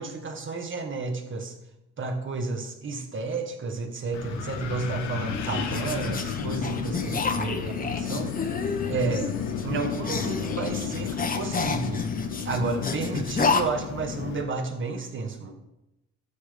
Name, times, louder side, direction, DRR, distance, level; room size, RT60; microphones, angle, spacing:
voice 1, 0.0-1.5 2.0-8.3 8.9-9.3 9.6-12.1 12.4-15.5, right 4 dB, 40° right, 4 dB, 1.7 m, -31 dB
Wind, 4.1-14.4, left 7 dB, 65° left, 1.1 m, -32 dB
sound 1, 4.8-13.6, left 4 dB, 25° left, 1.1 m, -31 dB
13.0 x 6.3 x 3.5 m, 0.93 s
hypercardioid pair, 60°, 32 cm